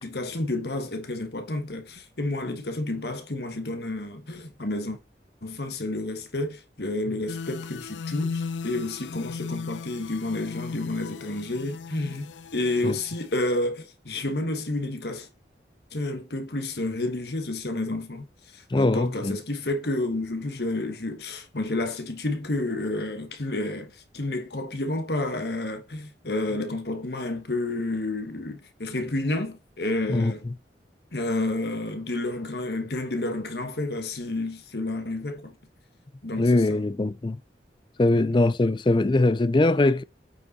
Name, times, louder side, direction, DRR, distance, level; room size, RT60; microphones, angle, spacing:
voice 1, 0.0-5.0 5.4-15.3 15.9-18.3 18.5-30.4 31.1-35.5 36.2-36.8 38.1-38.3, left 2 dB, 65° left, 1.5 m, -30 dB
sound 1, 7.3-13.4, left 5 dB, 90° left, 0.4 m, -36 dB
voice 2, 18.7-19.4 30.1-30.3 36.4-37.4 38.0-40.0, left 2 dB, 25° left, 0.4 m, -21 dB
9.0 x 5.2 x 4.2 m
head